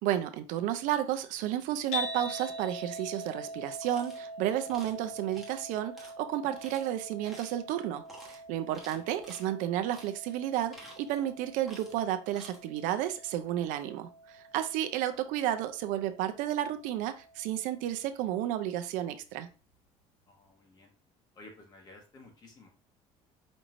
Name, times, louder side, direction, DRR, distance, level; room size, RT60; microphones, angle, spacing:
voice 1, 0.0-19.5, right 12 dB, 75° right, 0.5 m, -32 dB
sound 1, 1.9-18.1, equal, 55° left, 1.0 m, -44 dB
sound 2, 3.8-4.2 4.7-5.0 5.3-5.6 6.0-6.1 6.5-6.9 7.2-7.6 8.0-8.4 8.7-9.5 9.9-10.1 10.5-11.3 11.6-12.0 12.3-12.6, right 1 dB, ahead, 1.1 m, -51 dB
voice 2, 20.3-20.9 21.3-22.7, left 2 dB, 30° left, 1.2 m, -54 dB
5.2 x 3.0 x 2.5 m
cardioid pair, 165°, 14 cm